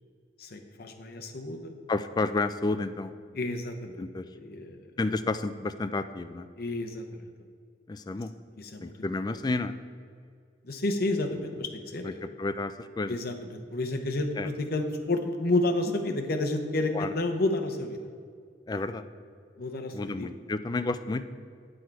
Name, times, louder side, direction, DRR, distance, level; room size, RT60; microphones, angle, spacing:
voice 1, 0.4-1.7 3.3-4.8 6.6-7.2 8.6-8.9 10.6-12.2 13.1-18.0 19.6-20.3, left 2 dB, 55° left, 4 dB, 0.8 m, -30 dB
voice 2, 1.9-3.1 4.0-4.2 5.0-6.5 7.9-8.3 8.8-9.8 12.0-13.2 14.4-14.5 16.9-17.1 18.7-19.0 19.9-21.2, left 3 dB, 25° left, 11 dB, 0.3 m, -31 dB
9.0 x 6.3 x 4.7 m, 2.2 s
head